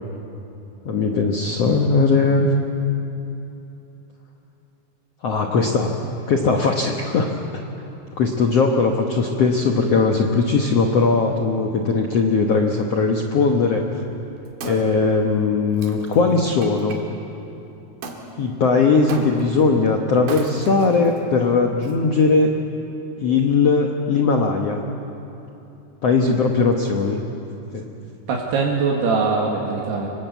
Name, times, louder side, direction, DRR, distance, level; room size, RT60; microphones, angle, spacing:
voice 1, 0.8-2.5 5.2-5.9 6.3-7.3 8.2-13.8 14.6-17.0 18.4-22.5 23.2-24.8 26.0-27.2 27.7-27.9, left 4 dB, 75° left, 2 dB, 1.4 m, -19 dB
Wood, 14.1-17.0 18.0-18.2 19.1-19.6 20.2-21.2 21.8-21.9, right 4 dB, 65° right, 3.7 m, -36 dB
voice 2, 28.3-30.1, right 4 dB, 80° right, -2 dB, 3.9 m, -22 dB
26.0 x 20.0 x 8.2 m, 2.9 s
omnidirectional pair, 4.6 m